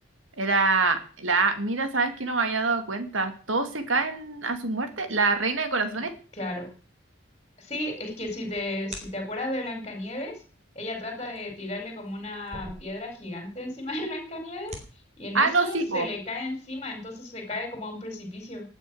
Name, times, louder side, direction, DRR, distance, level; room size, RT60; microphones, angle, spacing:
voice 1, 0.4-6.1 15.3-16.1, right 3 dB, 70° right, 8 dB, 2.4 m, -25 dB
voice 2, 6.3-6.7 7.6-10.4 10.7-14.8 15.2-18.6, left 1 dB, 25° left, 3 dB, 4.4 m, -34 dB
sound 1, 8.0-9.5 11.0-13.5 13.7-13.8 14.4-14.9, right 1 dB, 30° right, 3.8 m, -44 dB
18.5 x 9.1 x 6.3 m, 0.40 s
head